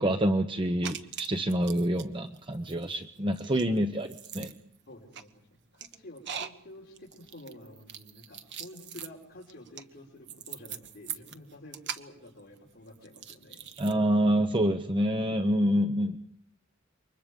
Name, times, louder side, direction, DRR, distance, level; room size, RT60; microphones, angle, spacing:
voice 1, 0.0-4.6 13.8-16.2, equal, 25° right, 7 dB, 0.9 m, -27 dB
sound 1, 0.8-2.0 2.3-13.9, right 8 dB, 60° right, 1.3 m, -42 dB
voice 2, 4.9-5.3 5.7-13.6, left 1 dB, 50° left, -4 dB, 5.1 m, -49 dB
29.0 x 24.5 x 5.3 m, 0.68 s
head